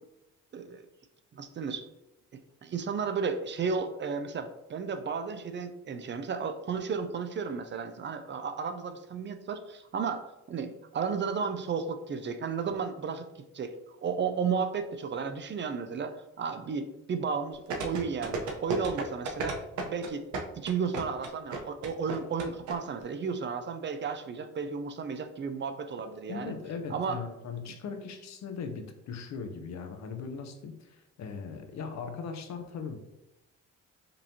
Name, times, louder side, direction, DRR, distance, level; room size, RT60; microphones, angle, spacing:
voice 1, 1.3-1.9 2.6-13.3 13.5-13.7 14.0-20.2 20.5-26.5 26.9-27.2, right 5 dB, 40° right, 8 dB, 0.4 m, -33 dB
sound 1, 17.7-22.7 23.0-23.1, right 3 dB, 75° right, 0.8 m, -33 dB
voice 2, 26.3-33.0, left 5 dB, 65° left, 6 dB, 0.7 m, -39 dB
5.2 x 2.8 x 2.7 m, 0.91 s
cardioid pair, 90°, 30 cm